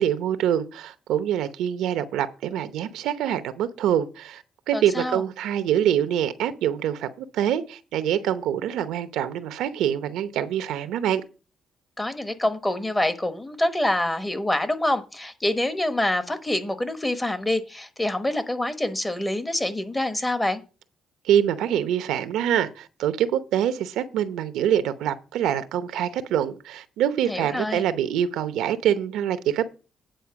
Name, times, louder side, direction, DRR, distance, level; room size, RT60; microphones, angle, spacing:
voice 1, 0.0-11.2 21.2-29.7, right 10 dB, 90° right, 0.8 m, -25 dB
voice 2, 4.7-5.2 12.0-20.6 27.3-27.9, left 1 dB, 15° left, 1.2 m, -26 dB
9.1 x 4.4 x 7.0 m
cardioid pair, 90°, 0 cm